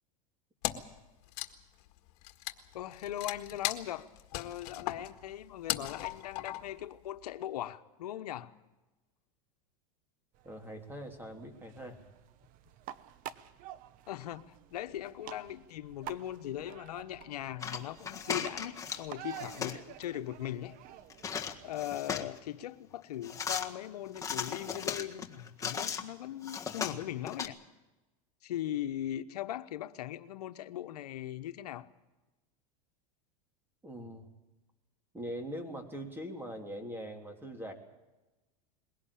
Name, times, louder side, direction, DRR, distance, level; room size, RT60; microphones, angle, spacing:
Wood, 0.6-1.0 1.3-6.8, left 15 dB, 60° left, 1.7 m, -38 dB
voice 1, 2.7-8.5 14.1-20.7 21.6-27.6 28.4-31.9, left 12 dB, 85° left, 10 dB, 1.1 m, -39 dB
sound 1, 10.3-21.8, right 11 dB, 45° right, 1.0 m, -50 dB
voice 2, 10.4-12.0 33.8-34.3 35.1-37.7, equal, 10° right, 5 dB, 3.2 m, -42 dB
sound 2, 17.6-19.1 19.3-19.8 21.1-22.4 23.2-23.7 24.2-26.0 26.4-27.5, left 7 dB, 15° left, 1.7 m, -37 dB
21.0 x 17.5 x 8.6 m, 1.1 s
supercardioid pair, 125°, 20 cm